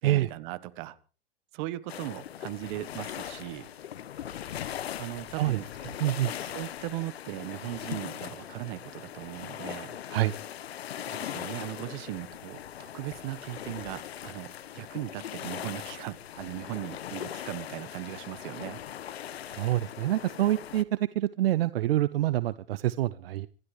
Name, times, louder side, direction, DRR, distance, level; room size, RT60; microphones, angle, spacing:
voice 1, 0.0-1.0 1.5-3.7 5.0-5.7 6.4-10.0 11.0-18.8, right 17 dB, 50° right, 1.4 m, -38 dB
sound 1, 1.9-20.8, left 10 dB, 85° left, 1.2 m, -40 dB
voice 2, 6.0-6.3 10.1-10.3 19.5-23.5, right 14 dB, 70° right, 0.8 m, -26 dB
26.0 x 13.0 x 3.3 m
hypercardioid pair, 120°, 30 cm